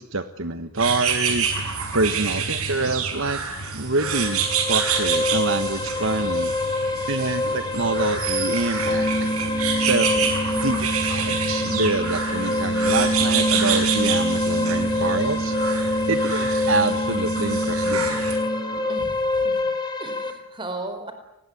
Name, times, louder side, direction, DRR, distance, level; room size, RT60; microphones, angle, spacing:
voice 1, 0.0-3.4 3.7-6.5 7.1-9.3 9.8-15.6 16.1-18.2, right 2 dB, 60° right, 9 dB, 1.3 m, -26 dB
sound 1, 0.8-18.4, right 6 dB, 80° right, 6.1 m, -28 dB
sound 2, 4.0-20.3, left 3 dB, 20° left, 2.9 m, -27 dB
sound 3, 8.8-18.8, right 1 dB, 50° left, 4.9 m, -27 dB
voice 2, 18.9-19.5 20.0-21.1, right 2 dB, 20° right, 8 dB, 4.7 m, -35 dB
29.0 x 20.0 x 9.8 m, 0.88 s
head